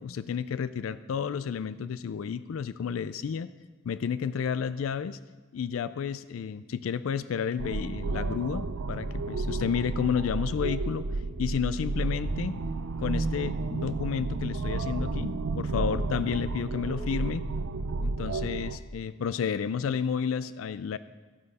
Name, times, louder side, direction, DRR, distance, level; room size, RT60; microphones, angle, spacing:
voice 1, 0.0-3.5 3.8-5.2 5.5-11.1 11.4-12.6 13.0-17.4 18.0-21.0, left 7 dB, 90° left, 15 dB, 0.4 m, -31 dB
sound 1, 7.6-18.8, right 3 dB, 90° right, 0.6 m, -32 dB
13.5 x 10.0 x 4.1 m, 1.3 s
head